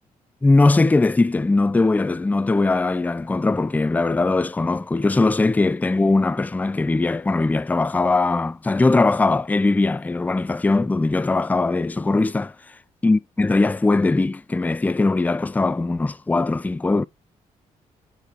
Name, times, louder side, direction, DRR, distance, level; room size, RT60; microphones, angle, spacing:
voice 1, 0.4-12.5 13.0-17.0, left 3 dB, 10° left, 0.3 m, -20 dB
9.7 x 4.1 x 3.1 m
hypercardioid pair, 45°, 17 cm